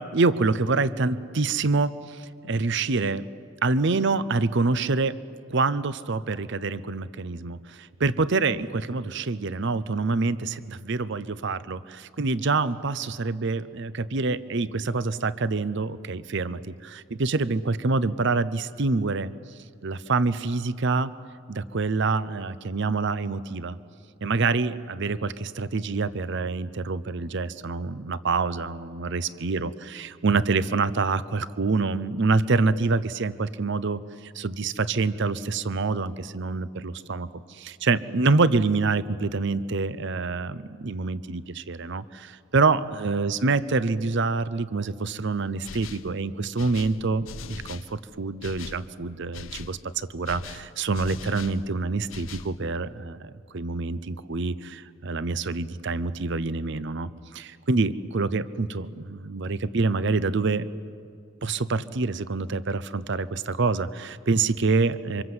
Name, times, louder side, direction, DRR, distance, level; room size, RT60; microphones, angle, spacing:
voice 1, 0.0-3.3 3.6-5.2 5.5-19.3 19.8-21.1 21.5-23.8 24.2-60.7 61.4-65.2, right 3 dB, 60° right, 15 dB, 0.7 m, -26 dB
sound 1, 45.6-46.1 46.6-47.9 48.4-48.8 49.3-49.8 50.2-51.6 52.1-52.6, left 5 dB, 75° left, 0.8 m, -40 dB
28.0 x 25.5 x 7.9 m, 2.3 s
head